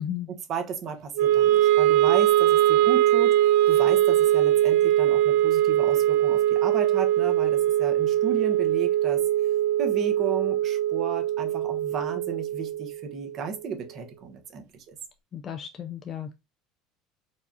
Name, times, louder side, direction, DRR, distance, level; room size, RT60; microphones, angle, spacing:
voice 1, 0.3-3.3 3.7-9.2 9.8-15.0, right 6 dB, 50° right, 1.0 m, -34 dB
Wind instrument woodwind instrument, 1.2-13.4, right 12 dB, 80° right, 0.4 m, -22 dB
voice 2, 15.3-16.3, left 9 dB, 40° left, 0.4 m, -34 dB
4.6 x 2.3 x 2.7 m
supercardioid pair, 105°, 0 cm